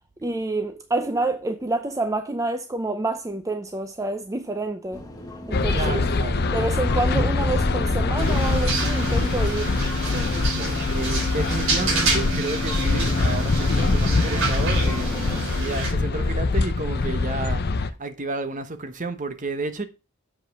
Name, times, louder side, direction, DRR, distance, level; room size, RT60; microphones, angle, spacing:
voice 1, 0.2-5.0 5.5-6.0 6.5-9.8 10.1-10.3, right 2 dB, 15° right, 0.5 m, -28 dB
sound 1, 4.9-15.4, left 1 dB, 20° left, 1.7 m, -35 dB
sound 2, 5.5-17.9, left 3 dB, 50° left, 0.6 m, -24 dB
voice 2, 5.7-6.5 10.6-19.9, right 3 dB, 35° right, 0.9 m, -31 dB
sound 3, 8.2-15.9, right 2 dB, 65° right, 4.5 m, -29 dB
7.3 x 5.4 x 5.2 m
head